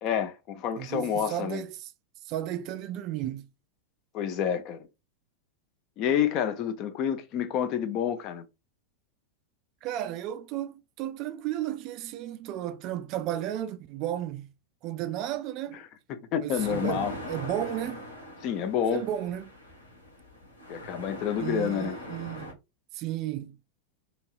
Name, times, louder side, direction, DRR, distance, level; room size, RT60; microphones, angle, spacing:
voice 1, 0.0-1.6 4.1-4.9 6.0-8.5 15.7-15.8 16.1-17.1 18.4-19.0 20.7-22.0, left 8 dB, 40° left, 0.6 m, -29 dB
voice 2, 0.8-1.8 2.2-3.5 9.8-14.5 14.8-15.8 16.4-18.0 18.9-19.5 21.4-22.5 22.9-23.6, right 12 dB, 40° right, 0.3 m, -33 dB
sound 1, 16.6-22.5, equal, 85° left, 1.2 m, -41 dB
3.0 x 2.7 x 2.4 m
figure-of-eight pair, 90°, 0 cm